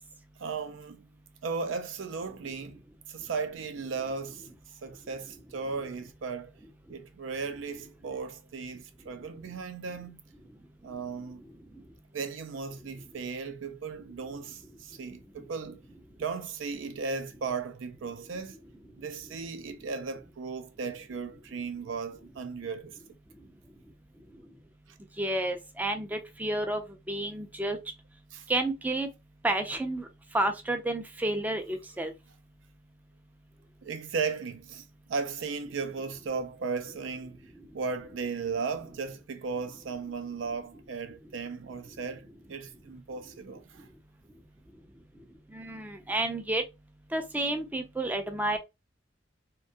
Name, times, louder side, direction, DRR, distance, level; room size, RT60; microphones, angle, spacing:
voice 1, 0.4-1.1 1.4-2.8 3.1-4.5 4.8-6.5 6.9-10.2 10.8-11.4 12.1-15.8 16.2-18.6 19.0-23.0 28.3-28.5 33.8-37.5 37.7-43.9, right 5 dB, 85° right, 0.4 m, -36 dB
voice 2, 25.2-26.8 27.1-27.8 28.5-29.1 29.4-30.0 30.3-32.1 45.5-46.6 47.1-48.6, right 1 dB, 10° right, 0.3 m, -30 dB
2.6 x 2.2 x 2.6 m
head